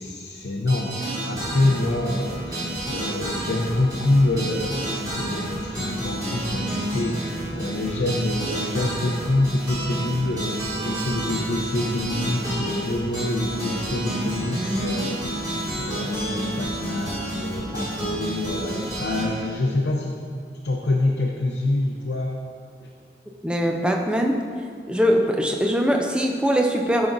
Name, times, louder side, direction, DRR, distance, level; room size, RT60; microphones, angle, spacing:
voice 1, 0.0-20.2 20.6-22.4 22.8-22.9, left 2 dB, 80° left, -1 dB, 0.6 m, -26 dB
sound 1, 0.7-19.3, right 1 dB, 20° right, 1.9 m, -30 dB
voice 2, 23.4-24.4 24.9-27.1, equal, 5° right, 2 dB, 0.4 m, -21 dB
10.5 x 5.9 x 2.6 m, 2.2 s
head